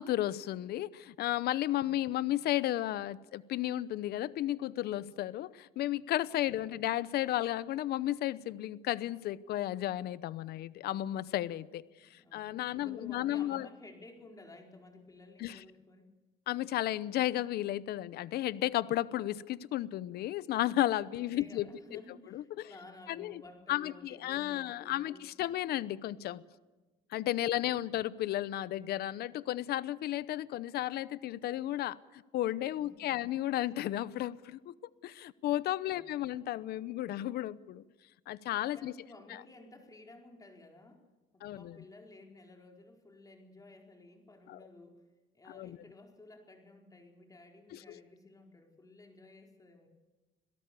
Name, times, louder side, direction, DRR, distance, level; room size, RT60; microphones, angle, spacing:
voice 1, 0.0-13.7 15.4-15.6 16.5-22.0 22.3-22.7 23.1-23.4 23.7-26.4 27.1-34.7 35.0-37.8 38.3-38.9 39.3-39.4 41.4-41.8 44.5-44.6 45.5-45.8 47.7-48.0, left 14 dB, 70° left, 0.8 m, -33 dB
voice 2, 1.8-2.2 6.4-6.8 12.0-12.5 12.7-16.1 21.1-25.2 32.7-33.2 35.9-36.3 38.7-41.0 41.3-45.0 45.3-49.9, left 2 dB, 20° left, 4.4 m, -54 dB
26.5 x 17.5 x 6.9 m
cardioid pair, 110°, 17 cm